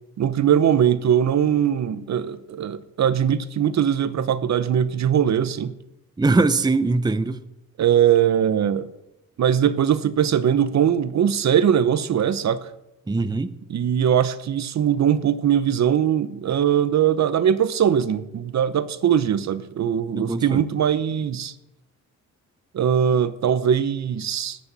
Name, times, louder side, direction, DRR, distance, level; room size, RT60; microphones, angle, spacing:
voice 1, 0.2-5.7 7.8-8.9 9.4-12.7 13.7-21.5 22.7-24.6, right 9 dB, 55° right, 0.8 m, -21 dB
voice 2, 6.2-7.4 13.1-13.5 20.1-20.6, right 3 dB, 10° right, 0.7 m, -21 dB
19.5 x 8.5 x 4.1 m
cardioid pair, 95°, 34 cm